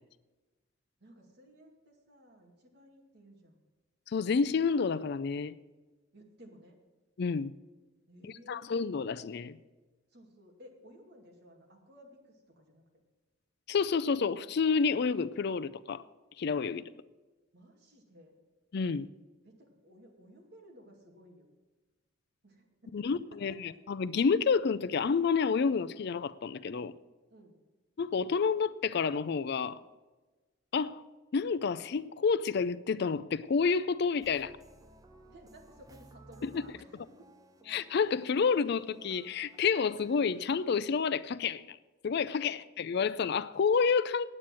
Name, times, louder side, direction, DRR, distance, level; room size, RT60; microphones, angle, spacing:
voice 1, 1.0-3.6 6.1-6.8 8.1-8.7 10.1-12.8 16.7-16.9 17.5-18.3 19.4-21.5 22.4-23.1 23.5-23.6 27.3-27.6 35.3-37.1 42.4-42.6, equal, 55° right, 2.4 m, -56 dB
voice 2, 4.1-5.5 7.2-7.5 8.2-9.6 13.7-16.0 16.4-16.8 18.7-19.1 22.9-26.9 28.0-29.8 30.7-31.0 31.3-34.5 37.7-41.8 42.0-44.2, left 5 dB, 55° left, 0.4 m, -29 dB
sound 1, 34.2-40.4, right 1 dB, 20° right, 0.8 m, -57 dB
9.4 x 8.8 x 7.5 m
head